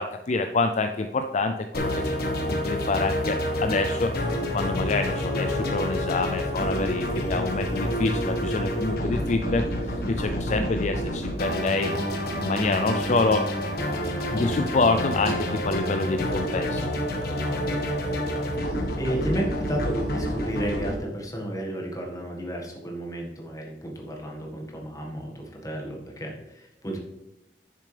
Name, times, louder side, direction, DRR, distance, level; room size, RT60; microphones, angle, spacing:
voice 1, 0.0-2.2 2.5-11.9 12.4-13.4 14.3-16.9, left 3 dB, 45° left, 7 dB, 0.4 m, -27 dB
sound 1, 1.7-20.9, equal, 60° left, 1.5 m, -28 dB
voice 2, 18.6-27.0, right 1 dB, 20° left, 0 dB, 1.7 m, -32 dB
10.0 x 6.9 x 3.4 m, 0.92 s
head